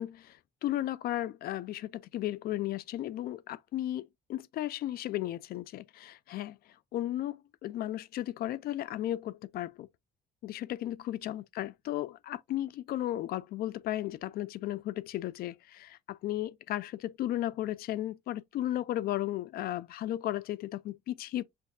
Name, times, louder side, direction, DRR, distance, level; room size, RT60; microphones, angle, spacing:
voice 1, 0.0-6.6 6.9-9.9 10.4-21.4, left 13 dB, 65° left, 0.4 m, -35 dB
6.5 x 2.6 x 2.6 m
cardioid pair, 110°, 17 cm